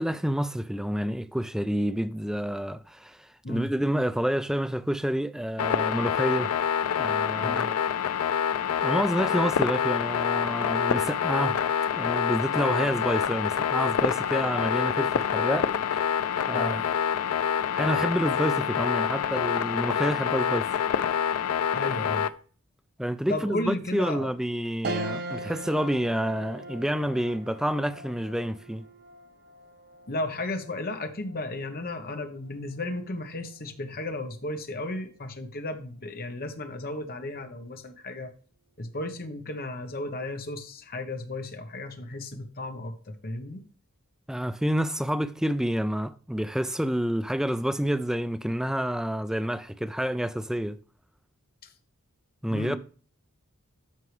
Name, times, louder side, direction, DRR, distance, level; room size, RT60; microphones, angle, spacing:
voice 1, 0.0-6.5 7.0-7.8 8.8-11.6 11.9-15.7 16.5-16.8 17.7-20.7 23.0-28.8 44.3-50.8 52.4-52.8, equal, ahead, 0.3 m, -28 dB
sound 1, 5.6-22.3, left 8 dB, 80° left, 0.4 m, -26 dB
voice 2, 7.4-7.7 16.5-16.8 21.7-22.3 23.3-24.3 30.1-38.3 38.8-43.6 51.6-51.7 52.5-52.8, left 2 dB, 45° left, 1.0 m, -34 dB
sound 2, 24.8-34.4 34.9-35.0 36.3-36.8, right 1 dB, 45° right, 0.9 m, -41 dB
13.0 x 4.7 x 3.3 m
head